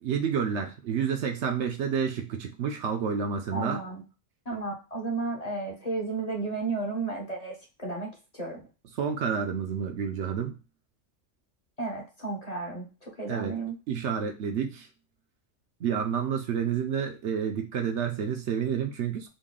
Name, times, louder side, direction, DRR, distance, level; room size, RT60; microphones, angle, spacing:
voice 1, 0.0-3.8 9.0-10.6 13.3-13.5 13.9-14.9 15.8-19.3, right 7 dB, 70° right, 4 dB, 0.8 m, -29 dB
voice 2, 3.5-4.0 4.5-8.6 11.8-13.8, right 3 dB, 35° left, 0 dB, 0.8 m, -33 dB
3.9 x 2.2 x 3.7 m, 0.30 s
omnidirectional pair, 1.3 m